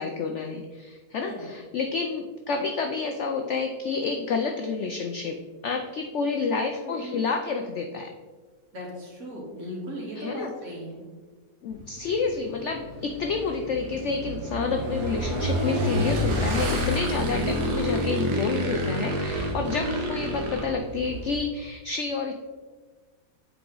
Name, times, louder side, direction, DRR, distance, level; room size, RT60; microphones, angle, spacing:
voice 1, 0.0-8.1 10.2-10.5 11.6-22.3, left 4 dB, 80° left, 4 dB, 0.6 m, -29 dB
voice 2, 6.8-7.2 8.7-11.0 17.4-17.7, equal, 55° right, -3 dB, 2.3 m, -37 dB
Motorcycle / Engine, 11.7-21.4, equal, 70° right, 1.6 m, -29 dB
7.8 x 4.7 x 3.9 m, 1.4 s
omnidirectional pair, 1.8 m